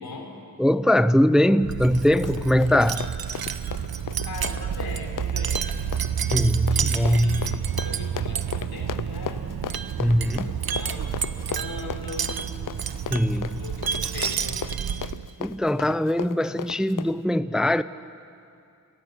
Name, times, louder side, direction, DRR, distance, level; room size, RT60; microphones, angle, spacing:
voice 1, 0.6-3.1 6.3-7.6 10.0-10.6 13.1-13.7 15.4-17.8, left 1 dB, ahead, 0.5 m, -21 dB
Wind chime, 1.6-15.3, right 8 dB, 80° right, 0.8 m, -29 dB
Run, 1.9-17.2, left 9 dB, 65° left, 0.6 m, -36 dB
voice 2, 4.3-5.7 6.7-9.5 10.4-12.4 13.3-14.6, left 3 dB, 90° left, 3.6 m, -40 dB
28.0 x 14.0 x 8.1 m
cardioid pair, 60°, 35 cm